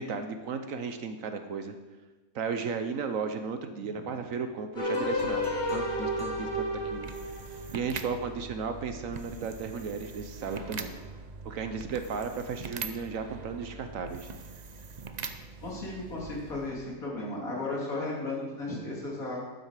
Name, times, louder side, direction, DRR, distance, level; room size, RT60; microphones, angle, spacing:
voice 1, 0.0-1.7 2.3-7.1 7.7-10.9 11.4-14.3, right 5 dB, 75° right, 8 dB, 1.2 m, -35 dB
sound 1, 4.8-8.0, left 1 dB, 35° left, 1.7 m, -31 dB
sound 2, 5.0-16.9, right 4 dB, 45° right, 0.6 m, -43 dB
voice 2, 15.6-19.4, left 2 dB, 90° left, -3 dB, 3.2 m, -35 dB
12.0 x 9.3 x 4.9 m, 1.2 s
omnidirectional pair, 1.4 m